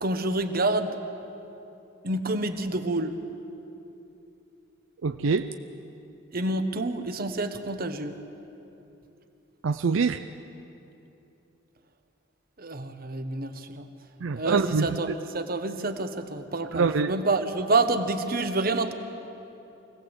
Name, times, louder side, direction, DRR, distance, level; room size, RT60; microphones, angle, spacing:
voice 1, 0.0-1.0 2.0-3.2 6.3-8.2 12.6-13.9 14.3-18.9, right 2 dB, 50° right, 8 dB, 1.2 m, -28 dB
voice 2, 5.0-5.5 9.6-10.2 14.2-14.9 16.7-17.1, right 5 dB, 80° right, 9 dB, 0.5 m, -24 dB
25.0 x 18.0 x 8.1 m, 2.9 s
head